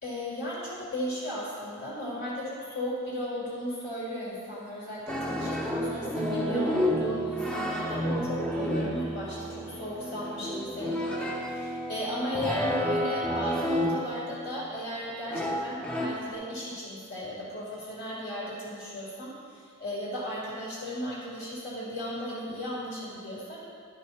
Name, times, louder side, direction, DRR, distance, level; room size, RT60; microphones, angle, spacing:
voice 1, 0.0-23.6, equal, 55° left, -7 dB, 2.2 m, -36 dB
sound 1, 5.1-14.5 15.3-16.3, equal, 5° left, 0.6 m, -30 dB
12.0 x 5.2 x 4.2 m, 2.2 s
head